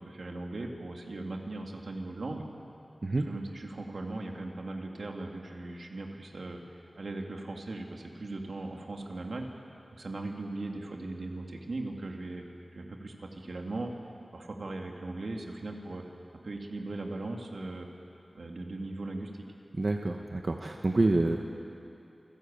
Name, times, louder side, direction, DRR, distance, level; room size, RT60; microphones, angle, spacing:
voice 1, 0.0-2.4 3.2-6.6 7.0-9.5 10.0-12.4 12.7-13.9 14.3-16.0 16.3-17.9 18.3-19.3, right 2 dB, 80° right, 2 dB, 2.2 m, -38 dB
voice 2, 19.8-21.4, right 2 dB, 55° right, 3 dB, 1.0 m, -27 dB
27.5 x 13.0 x 8.7 m, 2.7 s
wide cardioid pair, 70°, 0 cm